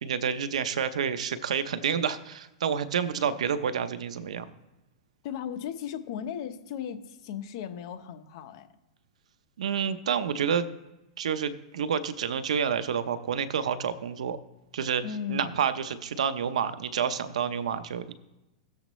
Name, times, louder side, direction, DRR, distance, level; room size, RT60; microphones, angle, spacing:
voice 1, 0.0-4.5 9.6-10.7 11.2-14.4 14.7-15.0 15.3-18.1, right 7 dB, 90° right, 12 dB, 0.7 m, -29 dB
voice 2, 5.2-8.7 15.0-15.6, left 8 dB, 50° left, 8 dB, 0.9 m, -36 dB
17.0 x 7.2 x 3.1 m, 0.98 s
supercardioid pair, 155°, 3 cm